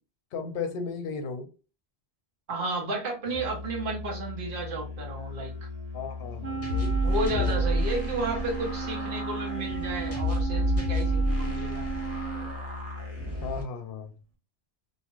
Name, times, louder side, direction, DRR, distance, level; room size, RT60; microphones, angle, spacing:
voice 1, 0.3-1.5 5.9-7.0 7.3-7.7 13.4-14.2, left 5 dB, 65° left, 0.7 m, -35 dB
voice 2, 2.5-5.7 7.0-11.9, right 2 dB, 55° right, 1.1 m, -32 dB
Musical instrument, 3.2-13.6, left 3 dB, 35° right, 1.0 m, -39 dB
Wind instrument woodwind instrument, 6.4-12.5, right 7 dB, 85° right, 0.9 m, -35 dB
sound 1, 6.6-13.6, equal, 15° left, 0.8 m, -30 dB
2.7 x 2.4 x 2.9 m
omnidirectional pair, 1.1 m